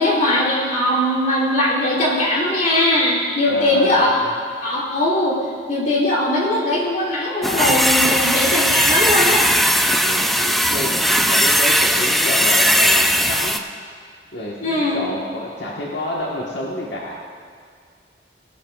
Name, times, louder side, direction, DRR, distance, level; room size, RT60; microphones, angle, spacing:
voice 1, 0.0-4.2 4.6-5.4 5.7-9.5 14.6-15.0, left 1 dB, 45° left, -4 dB, 3.2 m, -19 dB
voice 2, 3.5-4.3 10.0-13.6 14.3-17.1, left 1 dB, 80° left, -4 dB, 1.4 m, -29 dB
sound 1, 7.4-13.6, equal, ahead, 0.3 m, -17 dB
18.0 x 13.0 x 2.5 m, 2.1 s
head